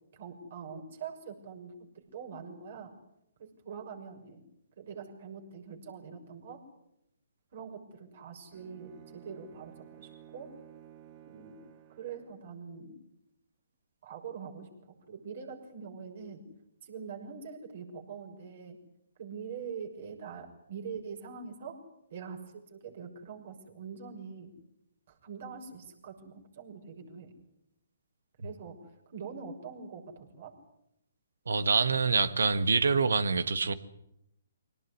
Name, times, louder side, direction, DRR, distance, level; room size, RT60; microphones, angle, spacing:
voice 1, 0.1-2.9 3.4-4.4 4.8-6.6 7.5-10.5 11.2-11.6 11.9-13.0 14.0-14.7 15.1-16.4 16.8-18.8 19.2-21.8 22.1-24.5 25.1-27.3 28.4-30.5, right 6 dB, 55° right, 6.3 m, -44 dB
Bowed string instrument, 8.5-12.6, right 10 dB, 30° right, 2.6 m, -54 dB
voice 2, 31.5-33.7, right 4 dB, 75° right, 1.7 m, -26 dB
24.0 x 18.5 x 9.7 m
figure-of-eight pair, 135°, 0 cm